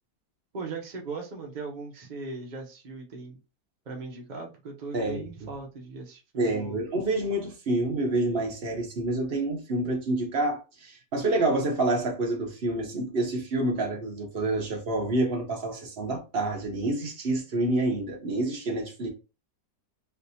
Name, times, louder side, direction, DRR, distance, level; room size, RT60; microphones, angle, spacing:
voice 1, 0.5-3.4 3.9-6.8, right 3 dB, 70° right, 0.4 m, -38 dB
voice 2, 6.4-19.1, right 2 dB, 45° right, 0.8 m, -28 dB
3.3 x 2.6 x 2.7 m
omnidirectional pair, 1.8 m